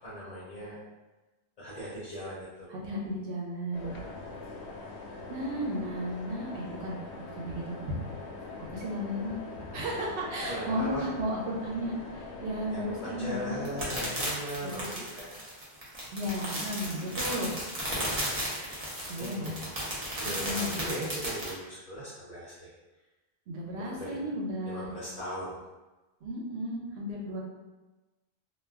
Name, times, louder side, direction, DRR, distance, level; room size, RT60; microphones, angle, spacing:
voice 1, 0.0-0.8 1.6-2.7 10.4-11.1 12.7-15.3 19.2-19.7 20.2-22.7 23.8-24.2 24.7-25.6, equal, 40° left, -8 dB, 0.7 m, -39 dB
voice 2, 2.7-3.9 5.3-7.0 7.3-7.9 8.7-9.4 9.6-13.6 14.6-14.9 16.1-17.6 18.0-18.7 19.1-19.6 20.4-20.7 23.5-24.9 26.2-27.4, equal, 80° right, -3 dB, 1.0 m, -34 dB
sound 1, 3.7-14.2, left 3 dB, 80° left, 0.9 m, -43 dB
sound 2, 13.6-21.5, right 1 dB, 40° right, 0.8 m, -34 dB
2.3 x 2.3 x 3.4 m, 1.1 s
omnidirectional pair, 1.1 m